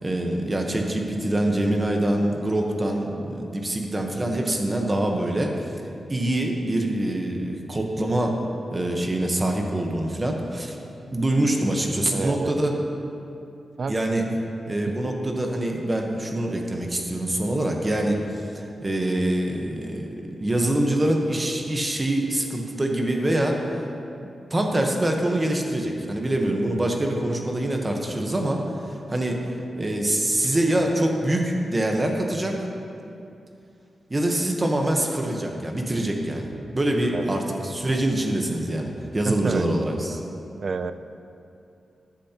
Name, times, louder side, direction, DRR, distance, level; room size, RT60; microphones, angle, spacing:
voice 1, 0.0-5.5 6.1-8.4 8.7-10.8 11.1-12.7 13.9-14.2 14.7-23.7 24.5-28.6 28.9-29.4 29.8-32.6 34.1-36.5 36.7-40.2, right 1 dB, 20° right, 2 dB, 1.0 m, -25 dB
voice 2, 12.1-12.7 13.8-14.0 14.2-14.4 14.9-15.0 37.1-37.4 39.0-39.7 40.6-40.9, right 4 dB, 50° right, 11 dB, 0.4 m, -30 dB
13.5 x 10.5 x 2.9 m, 2.6 s
wide cardioid pair, 120°, 0 cm